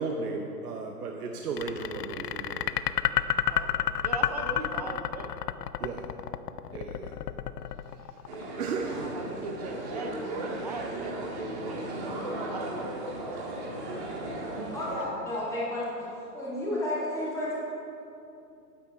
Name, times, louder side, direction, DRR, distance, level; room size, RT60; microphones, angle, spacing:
voice 1, 0.0-2.7 5.8-6.1 6.7-7.1 7.9-8.2 8.5-9.2 9.9-10.0, right 4 dB, 65° right, 2 dB, 0.9 m, -35 dB
sound 1, 1.6-8.7, left 12 dB, 75° left, 0.5 m, -29 dB
voice 2, 3.5-5.3 8.9-13.8 14.6-14.7, right 3 dB, 25° right, 4 dB, 0.4 m, -39 dB
sound 2, 8.3-15.0, right 1 dB, 45° right, 2.2 m, -36 dB
voice 3, 14.7-17.5, left 1 dB, 5° left, -8 dB, 1.4 m, -32 dB
9.0 x 7.0 x 4.4 m, 2.7 s
hypercardioid pair, 145°, 48 cm